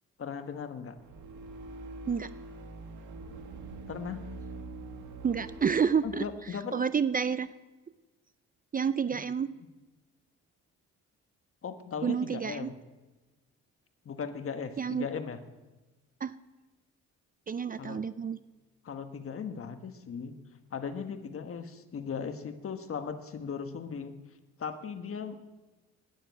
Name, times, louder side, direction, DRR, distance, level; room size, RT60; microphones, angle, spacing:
voice 1, 0.2-1.0 3.9-4.2 6.0-6.8 11.6-12.7 14.0-15.4 17.8-18.0 18.8-20.3 20.7-24.2 24.6-25.4, left 6 dB, 45° left, 8 dB, 1.4 m, -37 dB
sound 1, 0.9-6.2, right 2 dB, 80° right, 2.1 m, -44 dB
voice 2, 5.2-6.2 6.7-7.5 8.7-9.5 12.0-12.7 14.8-15.1 16.2-16.3 17.5-18.4, right 6 dB, 30° right, 14 dB, 0.5 m, -29 dB
12.0 x 10.0 x 8.3 m, 1.2 s
cardioid pair, 90°, 30 cm